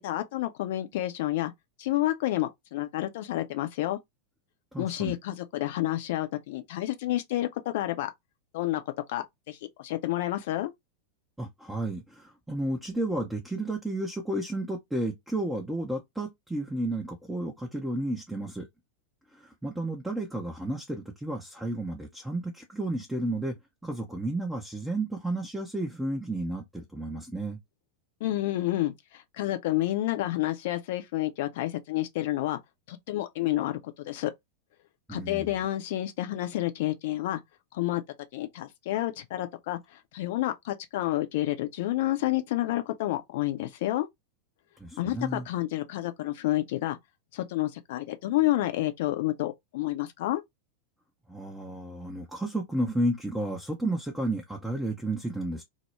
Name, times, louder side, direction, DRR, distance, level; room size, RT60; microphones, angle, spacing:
voice 1, 0.0-1.5 1.8-4.0 4.8-8.1 8.5-8.8 9.1-10.7 28.2-32.6 32.9-33.8 34.0-34.3 35.1-37.4 37.7-38.0 38.3-39.8 40.1-44.1 45.0-47.0 47.3-50.4, left 15 dB, 50° left, 0.4 m, -29 dB
voice 2, 4.7-5.1 11.4-18.7 19.3-27.6 35.1-35.5 44.8-45.5 51.3-55.6, right 1 dB, 5° right, 0.5 m, -32 dB
2.2 x 2.0 x 3.0 m
figure-of-eight pair, 90°, 0 cm